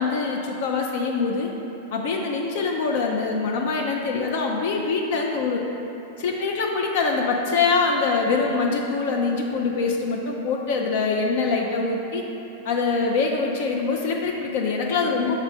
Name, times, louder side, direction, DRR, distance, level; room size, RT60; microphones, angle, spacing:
voice 1, 0.0-1.5 1.9-5.6 6.2-12.2 12.6-15.4, left 4 dB, 55° left, 0 dB, 0.5 m, -24 dB
6.2 x 3.1 x 5.3 m, 2.9 s
supercardioid pair, 160°, 0 cm